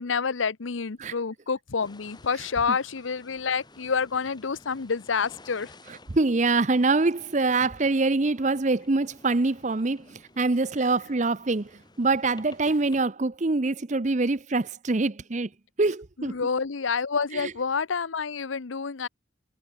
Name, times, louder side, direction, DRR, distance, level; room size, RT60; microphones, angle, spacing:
voice 1, 0.0-5.7 16.2-19.1, left 5 dB, 85° left, 0.8 m, -28 dB
sound 1, 1.8-13.0, left 2 dB, 20° left, 7.9 m, -54 dB
voice 2, 2.3-2.8 5.8-11.7 12.0-15.5 15.8-16.4 17.3-17.5, right 3 dB, 40° right, 0.7 m, -25 dB
head